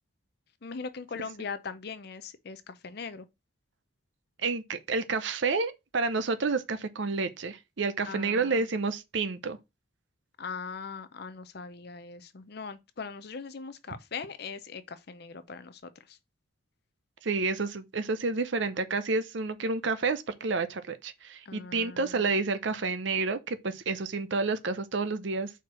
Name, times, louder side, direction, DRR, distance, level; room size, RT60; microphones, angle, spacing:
voice 1, 0.6-3.3 8.0-8.7 10.4-16.2 21.5-22.4, left 5 dB, 50° left, 0.5 m, -40 dB
voice 2, 4.4-9.6 17.2-25.5, right 4 dB, 60° right, 0.6 m, -30 dB
4.6 x 4.6 x 5.9 m
head